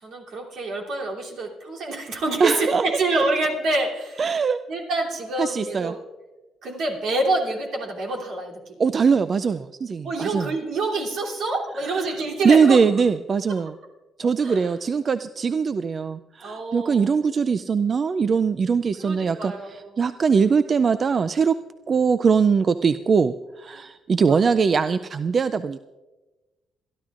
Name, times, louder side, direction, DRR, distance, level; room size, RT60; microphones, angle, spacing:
voice 1, 0.0-4.3 4.7-6.0 6.6-8.7 10.0-12.8 14.4-14.7 16.4-17.1 19.0-19.9 23.7-23.9 24.3-24.4, right 2 dB, 75° right, -2 dB, 3.0 m, -27 dB
voice 2, 2.4-2.8 4.2-4.6 5.4-5.9 8.8-10.5 11.7-12.2 12.4-13.8 14.2-21.5 21.9-25.8, right 5 dB, 45° right, 12 dB, 0.3 m, -21 dB
27.5 x 11.5 x 2.5 m, 1.2 s
cardioid pair, 90°, 0 cm